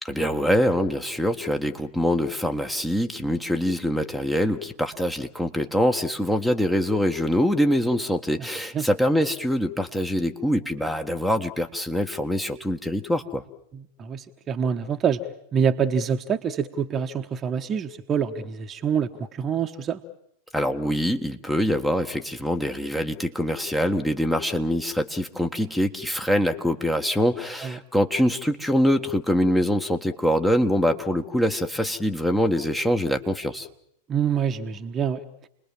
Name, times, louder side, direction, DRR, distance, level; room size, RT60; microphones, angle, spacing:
voice 1, 0.0-13.4 20.5-33.7, equal, 5° left, 5 dB, 1.6 m, -24 dB
voice 2, 13.7-15.2 15.5-20.0 27.6-27.8 34.1-35.2, right 7 dB, 25° right, 7 dB, 1.3 m, -26 dB
29.5 x 21.0 x 7.4 m, 0.74 s
figure-of-eight pair, 90°, 0 cm